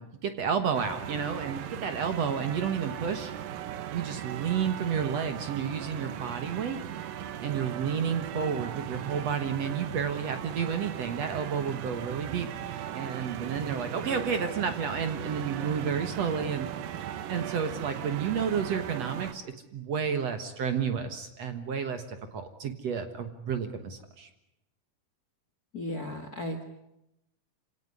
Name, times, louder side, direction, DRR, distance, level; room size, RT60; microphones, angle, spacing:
voice 1, 0.0-3.3 3.9-6.8 7.4-16.7 17.0-22.0 22.3-24.3, right 7 dB, 55° right, 8 dB, 2.2 m, -31 dB
sound 1, 0.7-19.3, right 10 dB, 75° right, 2.8 m, -38 dB
voice 2, 25.7-26.6, left 1 dB, 35° left, 7 dB, 1.6 m, -35 dB
26.5 x 17.5 x 9.7 m, 0.87 s
omnidirectional pair, 4.0 m